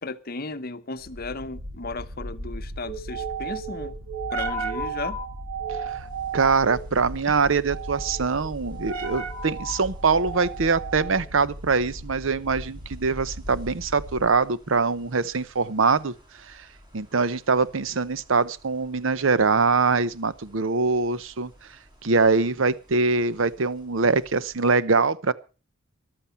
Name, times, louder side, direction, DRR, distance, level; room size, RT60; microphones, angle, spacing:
voice 1, 0.0-4.0 4.3-5.2, left 3 dB, 45° left, 0.8 m, -35 dB
sound 1, 1.0-14.4, right 3 dB, 85° right, 1.9 m, -34 dB
voice 2, 5.7-6.1 6.3-16.7 16.9-21.5 22.0-25.3, right 4 dB, 60° right, 0.7 m, -23 dB
sound 2, 5.8-24.8, equal, 20° right, 5.2 m, -55 dB
14.0 x 12.0 x 5.7 m
head